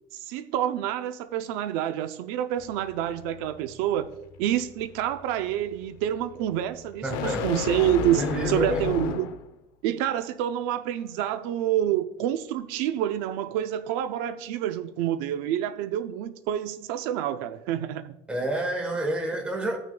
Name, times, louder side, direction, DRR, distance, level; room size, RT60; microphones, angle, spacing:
voice 1, 0.1-4.1 4.4-9.4 9.8-18.1, right 11 dB, 70° right, 0.5 m, -28 dB
sound 1, 2.6-9.5, left 8 dB, 80° left, 0.7 m, -34 dB
voice 2, 7.0-7.5 8.2-8.9 18.3-19.8, right 1 dB, 10° right, 1.2 m, -28 dB
16.5 x 6.2 x 2.3 m
cardioid pair, 175°, 13 cm